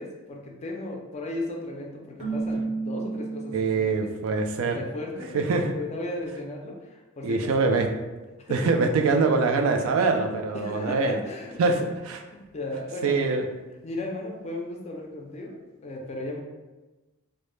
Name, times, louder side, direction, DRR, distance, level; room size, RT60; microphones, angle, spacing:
voice 1, 0.0-4.1 4.7-7.7 8.4-8.9 10.5-11.6 12.3-13.2 13.8-16.4, left 2 dB, 30° left, 1 dB, 0.4 m, -36 dB
Keyboard (musical), 2.2-4.2, right 3 dB, 35° right, 0.5 m, -32 dB
voice 2, 3.5-4.8 5.3-5.7 7.2-7.9 8.5-11.2 11.6-12.2 13.0-13.4, right 4 dB, 80° right, 5 dB, 0.3 m, -24 dB
2.1 x 2.0 x 3.0 m, 1.2 s
head